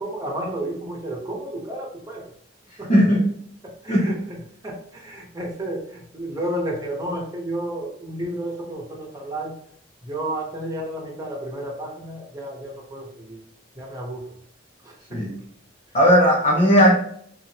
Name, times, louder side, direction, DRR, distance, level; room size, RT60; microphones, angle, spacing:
voice 1, 0.0-2.3 2.8-2.9 3.6-9.6 10.0-13.4 13.7-14.3 14.8-15.2, right 1 dB, 20° right, -2 dB, 1.1 m, -32 dB
voice 2, 2.9-3.2 3.9-4.1 15.1-15.4 15.9-16.9, equal, 35° left, -5 dB, 0.9 m, -16 dB
3.8 x 3.1 x 3.0 m, 0.63 s
head